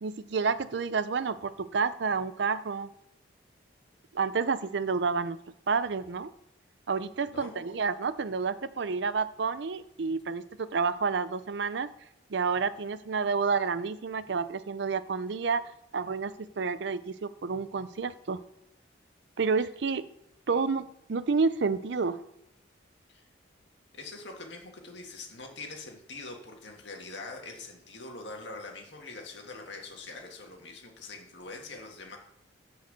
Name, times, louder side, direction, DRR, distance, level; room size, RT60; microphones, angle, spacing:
voice 1, 0.0-2.9 4.1-5.4 5.7-6.3 6.9-11.9 12.3-18.4 19.4-20.0 20.5-22.2, right 5 dB, 65° right, 14 dB, 0.5 m, -29 dB
voice 2, 7.3-7.6 20.5-20.6 23.1-23.2 23.9-32.2, left 3 dB, 65° left, 2 dB, 1.8 m, -43 dB
8.2 x 4.7 x 6.6 m, 0.80 s
head